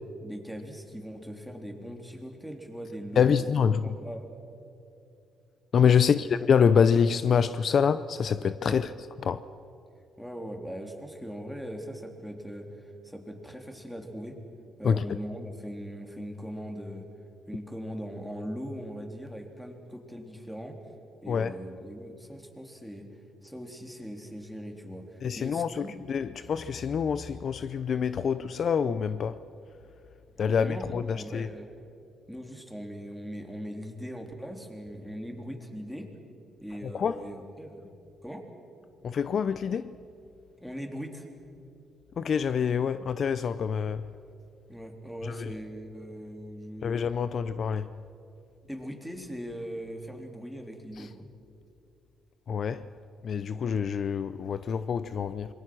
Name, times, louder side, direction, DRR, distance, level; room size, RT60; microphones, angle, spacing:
voice 1, 0.2-3.5 3.8-4.3 6.0-6.1 8.6-8.9 10.2-14.4 14.8-17.1 17.5-20.8 21.2-23.1 23.4-25.9 30.3-31.7 32.3-36.1 36.6-37.9 38.2-38.4 40.6-41.3 44.7-47.0 48.7-51.3, equal, ahead, 3.4 m, -40 dB
voice 2, 3.2-3.8 5.7-8.9 9.3-9.4 14.8-15.0 21.3-21.5 25.2-29.4 30.4-31.0 31.3-31.5 36.9-37.2 39.0-39.9 42.2-44.0 45.3-45.5 46.8-47.9 52.5-52.8 53.2-55.5, left 7 dB, 55° left, 0.6 m, -26 dB
26.5 x 22.0 x 6.2 m
cardioid pair, 90°, 0 cm